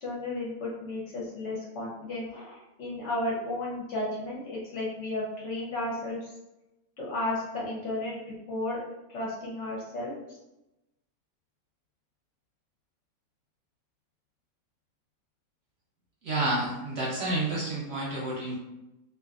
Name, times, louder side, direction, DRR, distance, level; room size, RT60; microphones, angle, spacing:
voice 1, 0.0-6.3 7.0-8.2 8.5-8.8 9.1-10.1, left 2 dB, 60° left, -4 dB, 0.9 m, -33 dB
voice 2, 16.2-18.6, right 2 dB, 55° right, -6 dB, 0.9 m, -29 dB
2.5 x 2.4 x 2.4 m, 0.97 s
omnidirectional pair, 1.5 m